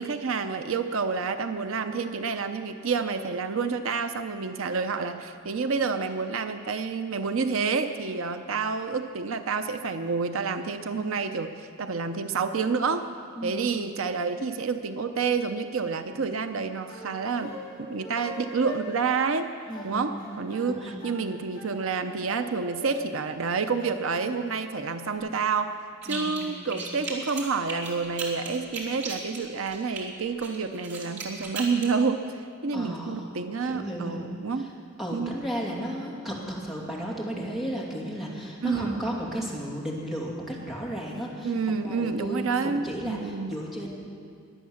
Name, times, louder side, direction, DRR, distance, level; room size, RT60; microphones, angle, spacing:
voice 1, 0.0-13.1 13.4-17.5 17.9-19.5 19.8-20.8 21.0-25.7 26.0-34.7 35.1-35.4 38.6-39.0 41.4-43.6, right 5 dB, 80° right, 8 dB, 0.7 m, -29 dB
voice 2, 13.4-13.9 19.7-20.3 20.7-21.0 26.1-26.7 32.7-33.2 33.6-34.4 35.0-41.5 41.8-44.0, equal, ahead, -5 dB, 2.7 m, -34 dB
sound 1, 16.6-25.2, left 1 dB, 25° left, 5.1 m, -43 dB
sound 2, 26.0-26.4 26.7-30.0 30.4-31.9, right 4 dB, 55° right, 3.4 m, -36 dB
22.5 x 8.5 x 7.2 m, 2.2 s
head